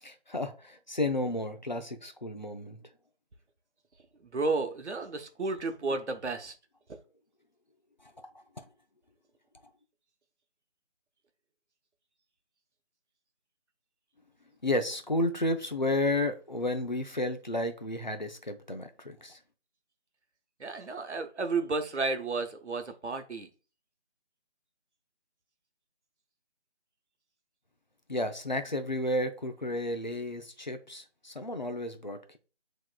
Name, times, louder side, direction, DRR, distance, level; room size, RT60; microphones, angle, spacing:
voice 1, 0.0-2.8 8.0-8.1 8.6-8.7 14.6-19.4 28.1-32.4, left 1 dB, 40° left, 0.5 m, -32 dB
voice 2, 4.2-6.5 20.6-23.5, right 3 dB, 85° right, 0.9 m, -32 dB
7.9 x 3.0 x 2.2 m
figure-of-eight pair, 175°, 34 cm